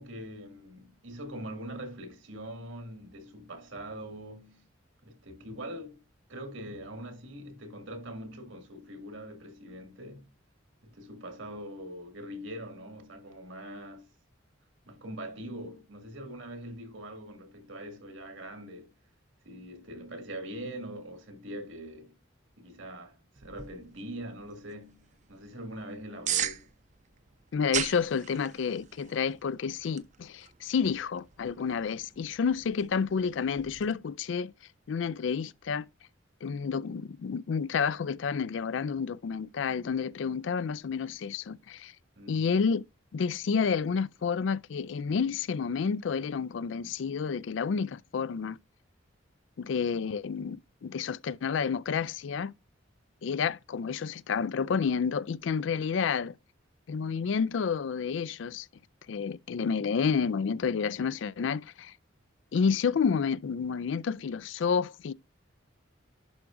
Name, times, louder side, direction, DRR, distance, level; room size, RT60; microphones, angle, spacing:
voice 1, 0.0-4.7 5.0-6.0 6.3-10.3 10.8-14.1 14.9-19.0 19.4-22.1 22.6-26.7 42.2-42.5, right 1 dB, 75° right, 2.3 m, -43 dB
sound 1, 23.4-33.9, right 9 dB, 40° right, 0.7 m, -40 dB
voice 2, 27.5-34.5 34.9-35.9 36.4-41.9 42.3-42.8 43.1-48.6 49.6-52.5 53.2-56.4 56.9-58.7 59.1-61.9 62.5-65.1, left 6 dB, 70° left, 0.4 m, -30 dB
11.5 x 4.8 x 2.6 m
head